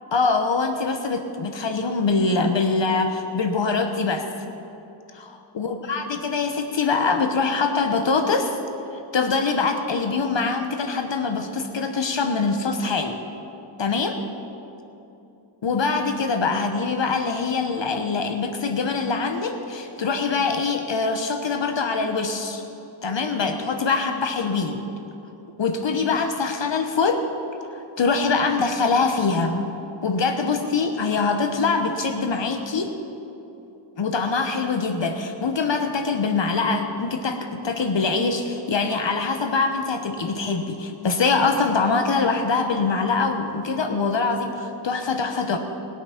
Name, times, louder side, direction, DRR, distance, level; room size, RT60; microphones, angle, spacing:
voice 1, 0.1-4.3 5.1-8.6 8.9-13.2 13.8-14.2 15.6-22.6 23.0-24.8 25.6-27.2 27.7-29.7 30.0-32.9 34.0-45.6, left 4 dB, 65° left, 6 dB, 1.0 m, -23 dB
20.0 x 8.4 x 5.8 m, 2.9 s
wide cardioid pair, 105°, 47 cm